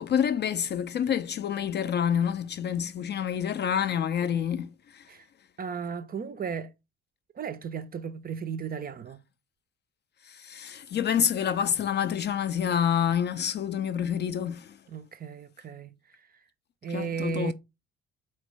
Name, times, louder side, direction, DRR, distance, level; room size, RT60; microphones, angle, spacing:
voice 1, 0.0-5.1 10.2-14.8 16.9-17.5, left 8 dB, 35° left, 0.4 m, -28 dB
voice 2, 5.6-6.7 7.3-9.2 14.9-15.9 16.8-17.5, right 6 dB, 30° right, 0.5 m, -35 dB
4.4 x 3.2 x 3.2 m
figure-of-eight pair, 45°, 33 cm